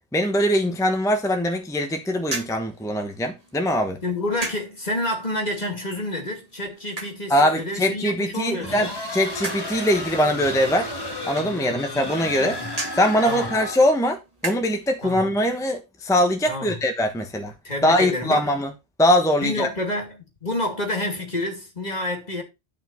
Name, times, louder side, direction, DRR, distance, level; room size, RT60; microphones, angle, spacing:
voice 1, 0.1-4.0 7.3-10.9 11.2-12.6 12.9-17.5 17.8-18.7 19.0-19.7, equal, 5° left, 1.0 m, -22 dB
sound 1, 2.2-15.0, right 2 dB, 35° right, 1.7 m, -39 dB
voice 2, 4.0-9.0 11.6-11.8 12.3-12.7 13.2-13.5 15.0-15.2 16.5-16.8 17.6-18.5 19.4-22.4, left 1 dB, 35° left, 2.7 m, -29 dB
sound 2, 8.6-14.0, left 1 dB, 20° left, 1.6 m, -32 dB
10.5 x 5.6 x 4.5 m
omnidirectional pair, 1.2 m